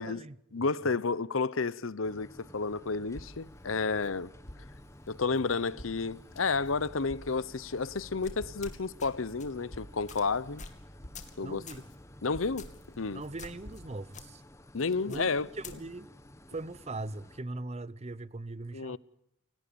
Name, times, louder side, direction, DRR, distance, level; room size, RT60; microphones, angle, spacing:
voice 1, 0.0-0.6 11.4-11.8 13.1-14.4 15.1-16.1 16.5-19.0, right 2 dB, 30° right, 0.8 m, -40 dB
voice 2, 0.5-4.3 5.1-10.6 11.4-11.6 12.2-12.7 13.0-13.2 14.7-15.5 18.7-19.0, left 4 dB, 80° left, 0.9 m, -31 dB
sound 1, 2.0-17.4, left 1 dB, 15° left, 1.3 m, -53 dB
Crackle, 3.0-13.9, equal, 60° left, 5.2 m, -52 dB
sound 2, 8.2-9.1 9.4-9.6 10.1-10.2 10.6-10.8 11.1-11.4 11.7-11.9 12.6-12.9 13.4-13.8 14.1-14.3 15.1-15.8, left 4 dB, 35° left, 2.8 m, -46 dB
28.5 x 18.0 x 7.0 m
head